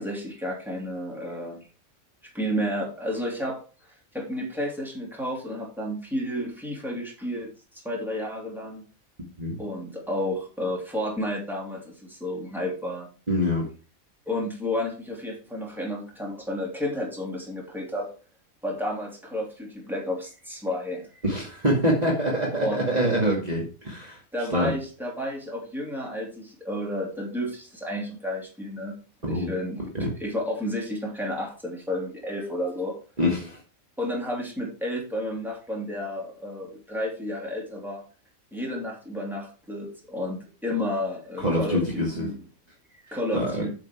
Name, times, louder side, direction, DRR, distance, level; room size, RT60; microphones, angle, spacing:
voice 1, 0.0-1.6 2.2-3.6 4.1-8.8 9.6-13.1 14.3-18.1 18.6-21.1 22.6-22.8 24.3-29.0 29.3-29.9 30.2-33.0 34.0-38.0 38.5-42.4 43.0-43.7, left 1 dB, ahead, -2 dB, 3.0 m, -31 dB
voice 2, 13.3-13.7 21.2-24.2 24.5-24.7 29.2-29.5 29.9-30.1 33.2-33.6 41.4-42.3 43.3-43.6, equal, 30° right, -3 dB, 2.3 m, -25 dB
8.7 x 6.6 x 4.5 m, 0.35 s
omnidirectional pair, 1.5 m